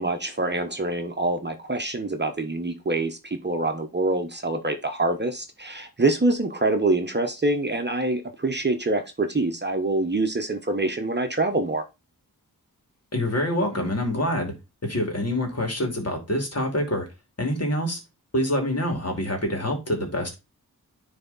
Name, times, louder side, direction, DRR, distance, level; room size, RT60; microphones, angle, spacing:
voice 1, 0.0-11.8, right 2 dB, 30° right, 1.0 m, -25 dB
voice 2, 13.1-14.5 14.8-17.1 17.4-18.0 18.3-20.3, left 1 dB, 40° left, 2.5 m, -26 dB
9.8 x 3.5 x 4.1 m
wide cardioid pair, 75°, 37 cm